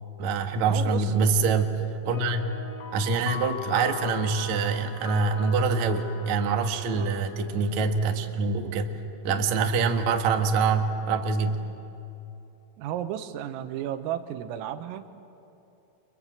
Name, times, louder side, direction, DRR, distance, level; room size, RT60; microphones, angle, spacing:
voice 1, 0.2-2.6 2.9-8.9 9.2-11.6, right 4 dB, 70° right, 4 dB, 1.7 m, -25 dB
voice 2, 0.7-1.1 6.9-7.2 12.8-15.2, right 11 dB, 85° right, 9 dB, 3.8 m, -33 dB
sound 1, 2.1-7.9, left 4 dB, 85° left, 5.2 m, -40 dB
29.5 x 24.5 x 7.5 m, 2.9 s
omnidirectional pair, 5.9 m